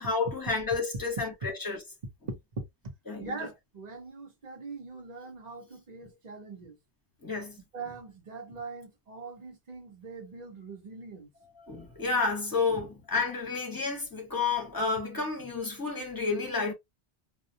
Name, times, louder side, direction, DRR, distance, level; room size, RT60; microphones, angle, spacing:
voice 1, 0.0-1.8 3.1-3.5 7.2-7.6 11.6-16.7, left 4 dB, 20° left, 0.8 m, -30 dB
voice 2, 3.2-6.8 7.7-11.3, right 4 dB, 45° right, 0.8 m, -42 dB
2.3 x 2.1 x 2.6 m
omnidirectional pair, 1.1 m